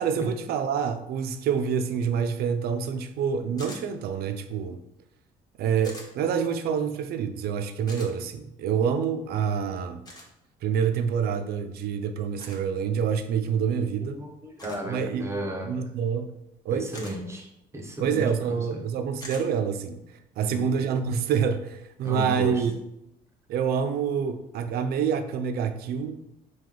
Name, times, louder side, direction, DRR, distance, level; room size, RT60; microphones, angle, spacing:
voice 1, 0.0-4.8 5.6-10.0 10.6-14.2 14.9-15.3 15.6-16.3 16.6-16.9 18.0-22.7 23.5-26.2, right 7 dB, 65° right, 8 dB, 0.4 m, -27 dB
sound 1, 3.6-3.8 5.8-6.1 7.9-8.1 10.0-10.3 12.4-12.6 14.6-14.9 16.9-17.2 19.2-19.4, left 1 dB, 25° left, 1.0 m, -42 dB
voice 2, 14.2-15.7 16.7-18.8 20.4-20.6 22.0-22.6, right 1 dB, 15° right, 2 dB, 0.7 m, -34 dB
4.6 x 2.3 x 3.7 m, 0.84 s
cardioid pair, 110°, 17 cm